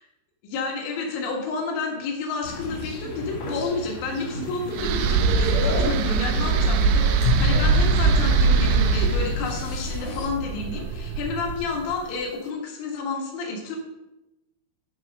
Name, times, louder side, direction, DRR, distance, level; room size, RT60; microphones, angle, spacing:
voice 1, 0.4-13.8, left 3 dB, 70° left, 1 dB, 3.8 m, -30 dB
sound 1, 2.4-10.3, left 2 dB, 55° left, 2.0 m, -34 dB
sound 2, 4.5-9.6, left 8 dB, 85° left, 3.3 m, -31 dB
sound 3, 4.7-11.9, right 5 dB, 80° right, 3.0 m, -22 dB
12.5 x 4.9 x 5.4 m, 0.97 s
omnidirectional pair, 5.6 m